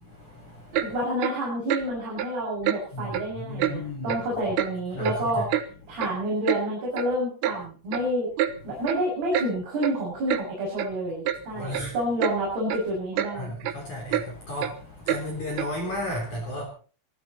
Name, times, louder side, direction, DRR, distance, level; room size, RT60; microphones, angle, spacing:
voice 1, 0.0-1.0 2.9-4.3 4.9-5.4 5.8-6.0 8.7-8.9 11.5-11.9 13.3-16.6, left 1 dB, 40° left, 4.6 m, -34 dB
Clock, 0.7-0.9 1.2-1.4 1.7-1.9 2.2-2.3 2.6-2.8 3.1-3.3 3.6-3.7 4.1-4.2 4.6-4.7 5.0-5.7 6.0-6.1 6.5-6.6 7.0-7.1 7.4-7.6 7.9-8.1 8.4-8.5 8.9-9.0 9.3-9.5 9.8-9.9 10.3-10.4 10.8-10.9 11.3-11.4 11.7-11.9 12.2-12.4 12.7-12.8 13.2-13.3 13.6-13.8 14.1-14.3 14.6-14.7 15.1-15.2 15.6-15.7, right 11 dB, 75° right, 2.4 m, -27 dB
voice 2, 0.8-5.5 5.9-8.3 8.6-13.5, right 1 dB, 55° right, 8.5 m, -29 dB
25.5 x 11.5 x 4.2 m
omnidirectional pair, 5.7 m